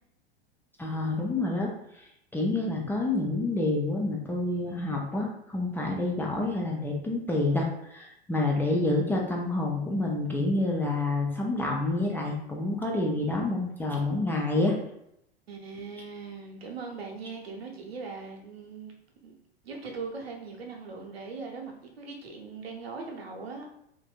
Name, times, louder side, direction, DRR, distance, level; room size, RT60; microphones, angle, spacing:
voice 1, 0.8-14.7, left 2 dB, 5° left, -2 dB, 0.3 m, -28 dB
voice 2, 15.5-18.9 19.2-19.3 19.6-23.7, right 4 dB, 75° right, 1 dB, 0.8 m, -40 dB
3.3 x 2.5 x 2.4 m, 0.77 s
figure-of-eight pair, 90°, 31 cm